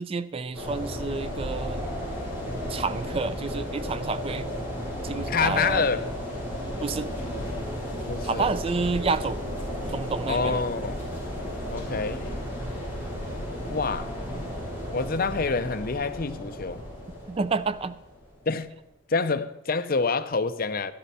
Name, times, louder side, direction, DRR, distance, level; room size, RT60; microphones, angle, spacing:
voice 1, 0.0-1.9 2.7-4.5 5.0-5.9 6.8-7.1 8.2-9.4 9.9-10.6 17.3-18.0, right 4 dB, 30° right, 0.3 m, -29 dB
sound 1, 0.5-18.5, equal, 10° right, 4.0 m, -34 dB
voice 2, 5.3-6.1 8.1-8.4 10.3-11.0 11.7-12.3 13.7-14.1 14.9-16.8 18.5-18.7 19.1-20.9, left 4 dB, 45° left, 0.6 m, -27 dB
12.5 x 12.5 x 4.2 m
head